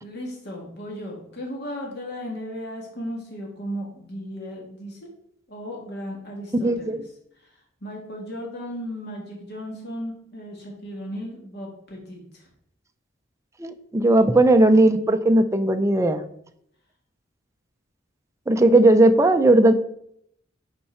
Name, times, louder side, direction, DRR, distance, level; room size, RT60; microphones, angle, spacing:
voice 1, 0.0-5.1 5.5-7.0 7.4-12.5, equal, 55° left, -1 dB, 1.7 m, -36 dB
voice 2, 6.6-7.0 13.6-16.2 18.5-19.7, right 1 dB, 15° right, 7 dB, 0.6 m, -17 dB
10.5 x 4.3 x 4.3 m, 0.70 s
head